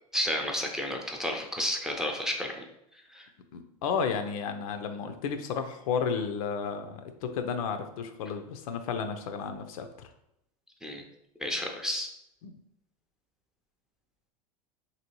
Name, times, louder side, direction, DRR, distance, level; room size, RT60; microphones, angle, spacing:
voice 1, 0.1-2.6 3.1-3.3 10.8-11.0 11.4-12.1, left 1 dB, 5° right, 1 dB, 0.5 m, -31 dB
voice 2, 3.5-9.9 12.4-12.5, left 6 dB, 75° left, 7 dB, 0.4 m, -32 dB
2.9 x 2.7 x 2.9 m, 0.78 s
hypercardioid pair, 95°, 19 cm